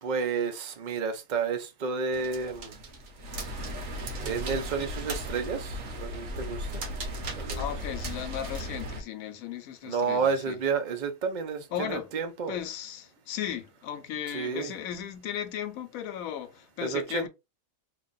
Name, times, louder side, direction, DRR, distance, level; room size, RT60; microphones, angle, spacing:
voice 1, 0.0-2.7 4.2-6.7 7.3-7.6 9.9-12.6 14.3-14.7 16.8-17.3, right 5 dB, 45° right, 0.6 m, -31 dB
sound 1, 2.1-9.0, equal, 70° right, 1.3 m, -36 dB
voice 2, 7.5-10.6 11.7-12.1 12.5-17.3, left 10 dB, 80° left, 1.1 m, -36 dB
3.2 x 2.4 x 3.9 m
omnidirectional pair, 1.4 m